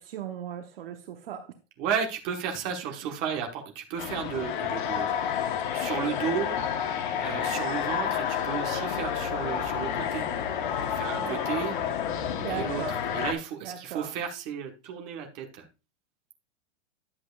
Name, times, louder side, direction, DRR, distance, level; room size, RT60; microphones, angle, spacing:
voice 1, 0.0-1.5 11.2-11.4 12.4-13.0 13.6-14.1, right 9 dB, 50° right, 0.9 m, -37 dB
voice 2, 1.8-6.9 7.2-10.3 10.8-11.8 12.5-12.8 13.1-15.7, right 7 dB, 25° right, 1.2 m, -33 dB
sound 1, 4.0-13.3, left 8 dB, 40° left, 1.0 m, -30 dB
10.5 x 7.6 x 2.3 m
supercardioid pair, 170°, 36 cm